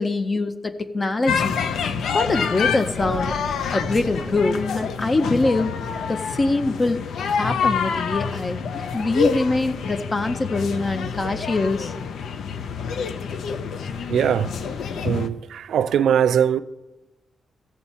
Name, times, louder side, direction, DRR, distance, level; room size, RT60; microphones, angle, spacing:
voice 1, 0.0-1.6 2.1-5.7 6.1-11.9, left 2 dB, 25° left, 0.4 m, -24 dB
sound 1, 1.3-15.3, left 6 dB, 85° left, 0.5 m, -27 dB
sound 2, 3.0-7.7, right 4 dB, 35° right, 0.5 m, -40 dB
voice 2, 14.1-14.5 15.0-16.6, right 9 dB, 85° right, 0.4 m, -20 dB
15.0 x 7.1 x 4.2 m
wide cardioid pair, 160°, 0 cm